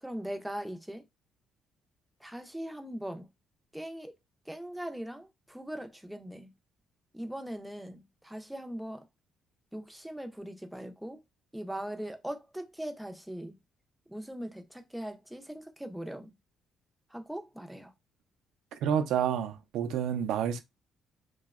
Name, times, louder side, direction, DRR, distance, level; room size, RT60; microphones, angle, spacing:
voice 1, 0.0-1.0 2.2-3.3 3.7-4.1 4.5-6.5 7.1-9.1 9.7-11.2 11.5-13.6 14.1-16.4 17.1-17.9, right 1 dB, 5° right, 0.4 m, -40 dB
voice 2, 18.7-20.6, right 8 dB, 80° right, 0.4 m, -29 dB
2.7 x 2.1 x 2.3 m
cardioid pair, 150°, 0 cm